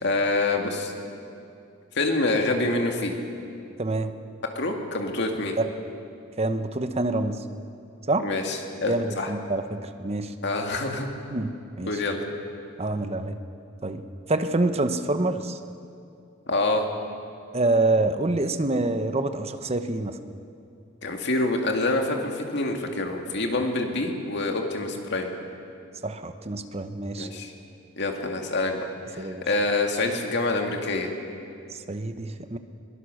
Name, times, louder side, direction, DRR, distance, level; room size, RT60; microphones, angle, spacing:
voice 1, 0.0-0.9 1.9-3.2 4.5-5.6 8.2-9.3 10.4-11.1 11.9-12.2 16.5-16.9 21.0-25.3 27.2-27.5 28.0-28.9 29.1-31.1, left 2 dB, 60° left, 2 dB, 2.3 m, -26 dB
voice 2, 3.8-4.1 5.6-5.7 6.4-7.4 8.1-8.3 8.9-10.3 11.3-11.5 11.8-11.9 12.8-13.4 13.8-14.0 14.3-15.6 17.5-20.1 26.0-27.3 29.2-29.4 31.9-32.6, right 2 dB, 30° right, 9 dB, 0.9 m, -26 dB
22.5 x 19.0 x 6.4 m, 2.6 s
head